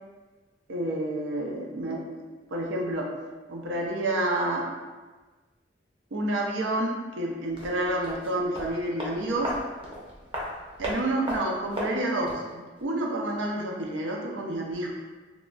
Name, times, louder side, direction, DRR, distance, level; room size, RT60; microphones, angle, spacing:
voice 1, 0.7-2.2 2.5-3.1 3.5-4.7 6.1-9.5 10.8-14.9, right 1 dB, 85° right, 0 dB, 0.5 m, -29 dB
sound 1, 7.5-12.5 12.8-12.9, equal, 30° right, 0.5 m, -36 dB
3.0 x 2.2 x 2.4 m, 1.3 s
head